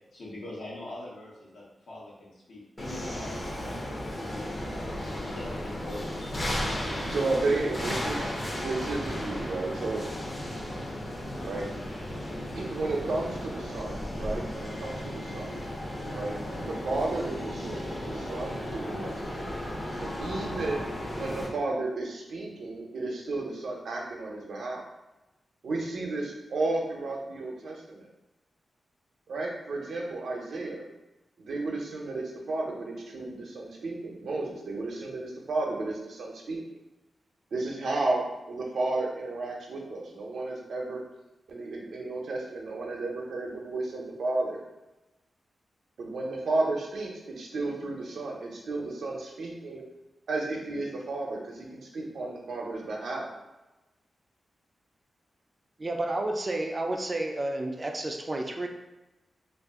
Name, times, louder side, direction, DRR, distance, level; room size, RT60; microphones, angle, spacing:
voice 1, 0.1-3.8 4.2-7.2 7.8-8.6 11.1-11.5, left 1 dB, 75° left, -5 dB, 1.0 m, -43 dB
sound 1, 2.8-21.5, left 1 dB, 25° left, 0.6 m, -35 dB
voice 2, 7.1-8.2 8.6-10.0 11.4-11.6 12.5-15.7 16.1-19.5 20.0-20.8 21.2-24.8 25.6-28.1 29.3-30.8 31.4-36.6 37.5-41.0 41.5-44.6 46.0-49.8 50.3-53.3, right 2 dB, 75° right, -1 dB, 0.6 m, -33 dB
voice 3, 55.8-58.7, right 2 dB, 30° right, 3 dB, 0.4 m, -31 dB
2.5 x 2.4 x 3.5 m, 1.0 s
wide cardioid pair, 110°, 0 cm